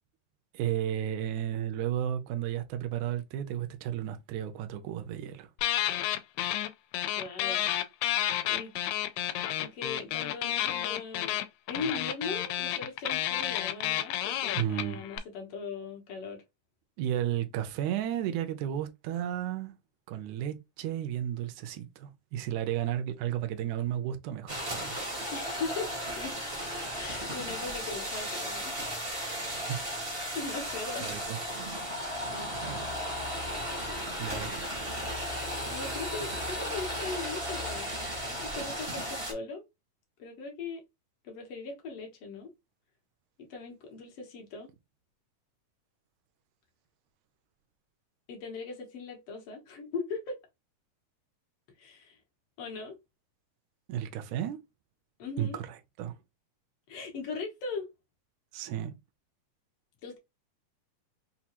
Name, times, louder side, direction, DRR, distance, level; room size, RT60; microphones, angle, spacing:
voice 1, 0.5-5.5 14.6-15.0 17.0-19.7 20.1-25.0 29.5-29.8 31.0-31.4 32.6-32.9 34.2-34.7 53.9-54.6 55.4-55.6 56.0-56.2 58.5-59.0, right 11 dB, 75° right, 1.8 m, -33 dB
sound 1, 5.6-6.7 6.9-15.2, left 12 dB, 90° left, 2.2 m, -30 dB
voice 2, 7.2-7.6 8.5-8.7 9.6-11.4 11.7-16.4 25.3-25.9 26.2-26.3 26.9-28.7 30.3-31.1 31.6-31.9 32.3-32.5 35.6-37.9 38.2-39.6 40.2-40.8 41.2-42.5 43.4-44.7 48.3-50.4 51.8-52.2 52.6-53.0 55.2-55.6 56.9-57.9 60.0-60.2, left 4 dB, 65° left, 1.6 m, -39 dB
sound 2, 24.5-39.3, equal, 50° right, 0.6 m, -35 dB
5.5 x 2.3 x 2.9 m
omnidirectional pair, 3.9 m